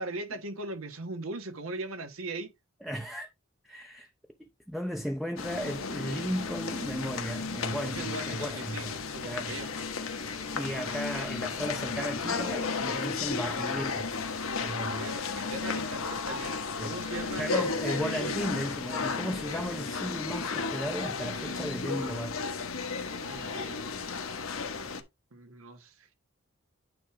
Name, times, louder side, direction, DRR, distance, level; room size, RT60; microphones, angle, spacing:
voice 1, 0.0-2.5 7.7-9.7 14.8-18.4 23.2-24.0 25.3-26.2, right 2 dB, 80° right, 1.4 m, -40 dB
voice 2, 2.8-3.3 3.6-4.1 4.4-9.0 9.2-9.6 10.5-14.1 14.6-15.2 16.8-17.0 17.4-22.4, equal, ahead, 0.6 m, -35 dB
sound 1, 5.4-25.0, left 4 dB, 85° left, 1.2 m, -34 dB
9.1 x 3.0 x 4.8 m
head